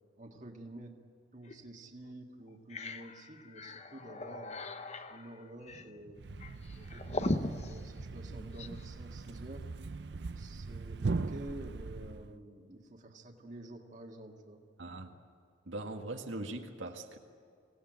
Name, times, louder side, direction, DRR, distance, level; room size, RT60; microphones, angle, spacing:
voice 1, 0.2-1.0 1.3-4.6 5.1-6.3 6.8-9.7 10.4-14.6, right 1 dB, 40° right, 2 dB, 1.8 m, -49 dB
sound 1, 1.4-1.6 2.1-2.2 2.5-8.8, left 2 dB, 35° left, 0.9 m, -40 dB
Thump thud, 6.2-12.4, right 3 dB, 60° right, 0.5 m, -40 dB
voice 2, 14.8-15.1 15.7-17.2, right 2 dB, 85° right, 3 dB, 1.7 m, -41 dB
25.0 x 17.5 x 9.0 m, 2.3 s
head